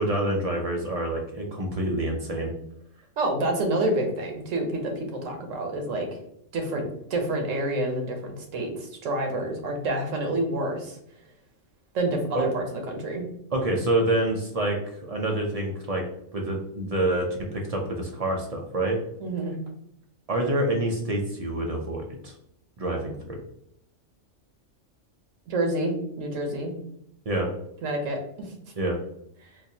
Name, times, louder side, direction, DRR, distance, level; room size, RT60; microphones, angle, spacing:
voice 1, 0.0-2.5 12.3-12.4 13.5-16.0 16.3-19.0 20.3-22.3 22.8-23.4 27.3-27.5 28.8-29.0, right 1 dB, 55° right, 0 dB, 0.4 m, -27 dB
voice 2, 3.2-6.2 6.5-11.0 11.9-13.3 19.2-19.6 25.5-26.7 27.8-28.5 29.4-29.5, right 1 dB, 85° right, 3 dB, 1.2 m, -28 dB
3.8 x 2.5 x 2.7 m, 0.73 s
omnidirectional pair, 1.3 m